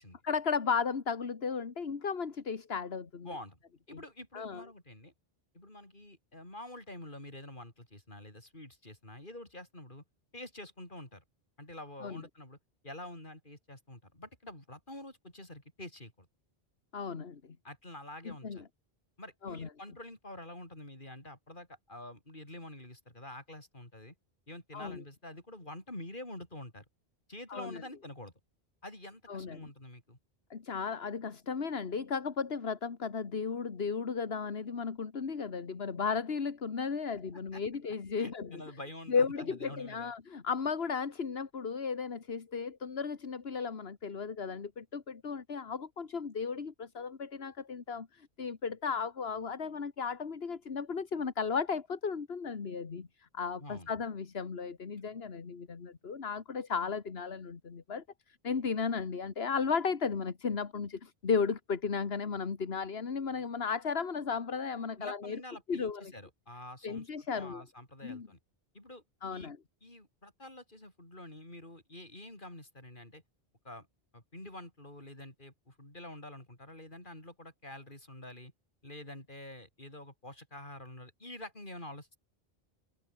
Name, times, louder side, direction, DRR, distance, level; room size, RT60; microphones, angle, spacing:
voice 1, 0.2-3.3 3.9-4.0 4.3-4.6 12.0-12.2 16.9-17.6 18.3-18.6 19.4-19.7 24.7-25.0 27.5-27.8 29.3-29.6 30.5-38.6 39.1-65.4 65.7-66.1 66.8-67.6 68.0-68.3 69.2-69.6, left 5 dB, 75° left, 1.8 m, -35 dB
voice 2, 3.2-3.6 3.9-5.1 5.5-10.0 10.3-11.2 11.6-12.6 12.8-16.3 17.6-18.6 19.2-24.1 24.5-26.8 27.3-28.3 28.8-30.2 37.5-37.6 38.2-40.1 53.6-53.9 65.0-68.4 68.7-69.0 69.3-69.5 69.8-73.2 73.6-73.9 74.1-78.5 78.8-82.2, left 1 dB, 50° left, 6.2 m, -47 dB
omnidirectional pair, 1.1 m